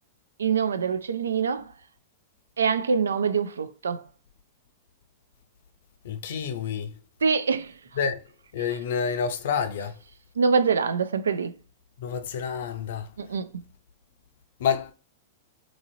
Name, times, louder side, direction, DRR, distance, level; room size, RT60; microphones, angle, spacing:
voice 1, 0.4-1.7 2.6-4.0 7.2-7.7 10.4-11.5 13.2-13.6, right 5 dB, 80° right, 0.3 m, -25 dB
voice 2, 6.0-6.9 8.0-8.2 8.5-9.9 12.0-13.1 14.6-14.9, left 6 dB, 65° left, 0.5 m, -28 dB
2.9 x 2.7 x 2.6 m
hypercardioid pair, 105°, 0 cm